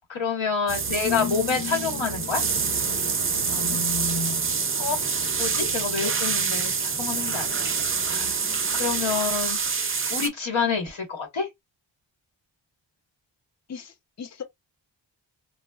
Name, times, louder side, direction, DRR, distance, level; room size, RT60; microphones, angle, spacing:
voice 1, 0.1-2.4 4.8-8.4 8.7-11.5, left 5 dB, 90° left, 1.4 m, -28 dB
sound 1, 0.7-10.3, right 5 dB, 30° right, 0.4 m, -26 dB
sound 2, 1.0-7.7, left 5 dB, 65° left, 1.0 m, -36 dB
voice 2, 3.1-3.8 13.7-14.4, left 6 dB, 35° left, 0.6 m, -40 dB
4.1 x 2.0 x 2.3 m
wide cardioid pair, 105°, 46 cm